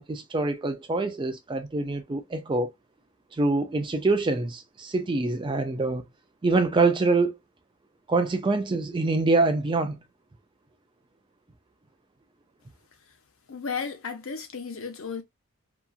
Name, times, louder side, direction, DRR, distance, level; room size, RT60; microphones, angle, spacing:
voice 1, 0.0-2.7 3.3-6.0 6.4-7.3 8.1-10.0, right 3 dB, 20° right, 0.3 m, -25 dB
voice 2, 13.5-15.2, left 5 dB, 65° left, 0.8 m, -34 dB
2.8 x 2.4 x 2.4 m
head